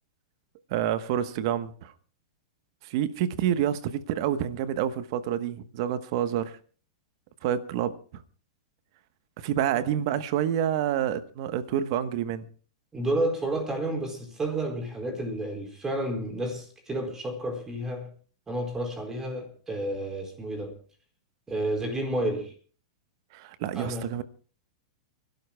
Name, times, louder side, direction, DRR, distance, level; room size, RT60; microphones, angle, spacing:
voice 1, 0.7-1.9 2.8-6.6 7.4-8.2 9.4-12.5 23.3-24.2, right 10 dB, 55° right, 1.2 m, -28 dB
voice 2, 12.9-18.1 18.5-20.8 21.5-22.5 23.7-24.1, right 1 dB, 15° right, 4.5 m, -31 dB
30.0 x 12.0 x 2.3 m
hypercardioid pair, 125°, 3 cm